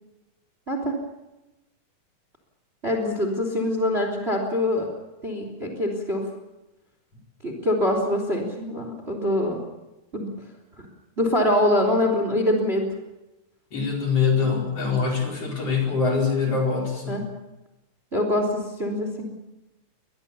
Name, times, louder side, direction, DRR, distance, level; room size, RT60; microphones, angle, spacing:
voice 1, 2.8-4.9 5.2-6.3 7.4-9.6 10.1-10.3 10.8-10.9 11.2-12.9 14.5-14.6 17.1-17.2 18.1-19.3, left 1 dB, 15° right, 4 dB, 3.2 m, -24 dB
voice 2, 13.7-17.2, left 5 dB, 40° left, 0 dB, 5.3 m, -24 dB
25.0 x 20.0 x 7.0 m, 0.98 s
omnidirectional pair, 4.4 m